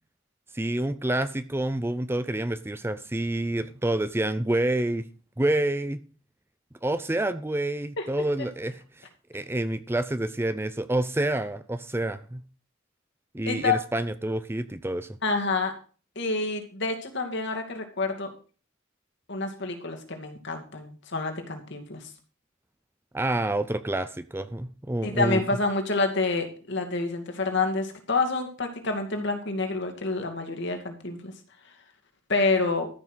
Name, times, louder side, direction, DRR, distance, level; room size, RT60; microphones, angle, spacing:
voice 1, 0.5-5.0 5.4-6.0 6.8-12.4 13.3-15.1 23.1-25.4, right 1 dB, 10° right, 12 dB, 0.6 m, -28 dB
voice 2, 13.5-13.8 15.2-15.7 16.2-18.3 19.3-22.0 25.0-31.3 32.3-32.9, left 3 dB, 60° left, 4 dB, 2.5 m, -28 dB
13.5 x 6.0 x 6.3 m, 0.37 s
head